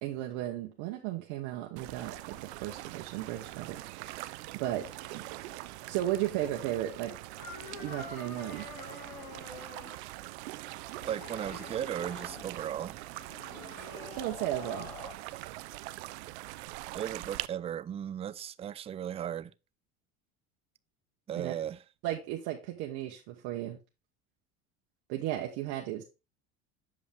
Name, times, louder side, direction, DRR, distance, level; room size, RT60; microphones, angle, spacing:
voice 1, 0.0-4.9 5.1-5.2 5.9-7.1 7.8-8.7 14.1-14.9 21.4-21.6 22.0-23.8 25.1-26.0, right 13 dB, 70° right, 1.1 m, -35 dB
sound 1, 1.8-17.5, right 18 dB, 90° right, 0.5 m, -43 dB
sound 2, 4.7-15.1, left 3 dB, 70° left, 3.1 m, -48 dB
voice 2, 11.1-13.0 16.9-19.5 21.3-21.8, right 10 dB, 20° right, 0.3 m, -36 dB
7.4 x 5.2 x 3.6 m
supercardioid pair, 100°, 32 cm